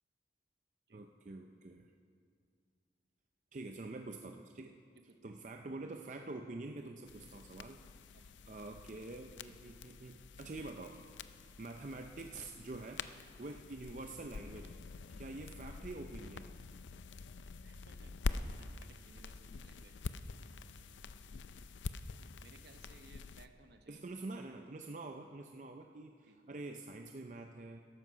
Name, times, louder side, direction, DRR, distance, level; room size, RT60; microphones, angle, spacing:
voice 1, 0.9-1.9 3.5-4.8 5.2-7.8 8.2-11.0 11.4-13.1 13.4-14.8 15.1-16.5 23.9-27.8, right 2 dB, 40° right, 4 dB, 0.5 m, -46 dB
voice 2, 5.0-5.3 8.1-8.3 11.7-11.8 13.4-13.5 17.6-20.2 20.4-21.1 22.4-24.0 26.2-26.4, right 3 dB, 65° right, 7 dB, 0.9 m, -63 dB
sound 1, 7.1-23.5, left 4 dB, 90° left, 0.5 m, -46 dB
14.0 x 12.0 x 5.6 m, 2.3 s
head